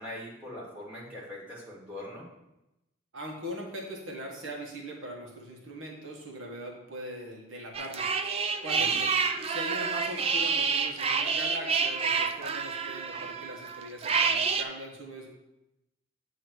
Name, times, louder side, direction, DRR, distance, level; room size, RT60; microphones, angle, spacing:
voice 1, 0.0-2.2 8.7-9.0, left 1 dB, 5° right, -7 dB, 2.3 m, -42 dB
voice 2, 3.1-8.1 8.6-9.1 9.4-15.3, equal, 80° right, -1 dB, 1.4 m, -40 dB
sound 1, 7.7-14.6, right 5 dB, 30° right, 0.4 m, -28 dB
8.3 x 3.1 x 6.2 m, 0.90 s
head